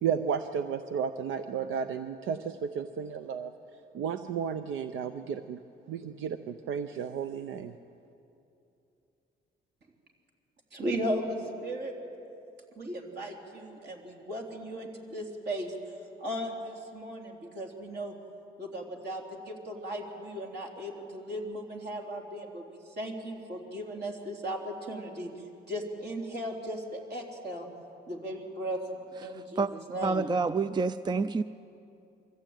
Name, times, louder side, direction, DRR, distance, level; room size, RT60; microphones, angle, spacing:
voice 1, 0.0-3.5 3.9-5.6 5.9-7.7, right 7 dB, 80° right, 10 dB, 0.7 m, -33 dB
voice 2, 10.7-11.9 12.8-15.7 16.2-18.1 18.6-25.3 25.7-27.7 28.1-28.8 29.2-29.6 29.9-30.2, equal, 55° right, 0 dB, 3.6 m, -36 dB
voice 3, 29.2-29.7 30.0-31.4, right 4 dB, 20° right, 14 dB, 0.4 m, -28 dB
23.5 x 14.5 x 9.0 m, 2.8 s
cardioid pair, 90°, 20 cm